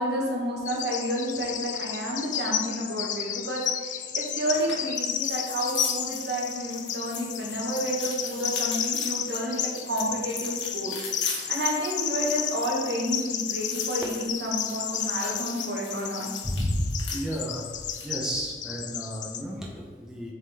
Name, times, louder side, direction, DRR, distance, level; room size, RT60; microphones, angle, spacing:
voice 1, 0.0-10.9 11.3-16.3, right 1 dB, 70° right, -2 dB, 1.2 m, -30 dB
Bird vocalization bird call bird song, 0.7-19.4, left 9 dB, 45° left, 0.3 m, -32 dB
sound 1, 4.5-18.2, left 4 dB, 80° left, 1.4 m, -41 dB
voice 2, 16.4-17.7 18.0-20.3, equal, 5° right, -4 dB, 0.7 m, -31 dB
7.5 x 3.7 x 3.4 m, 1.5 s
head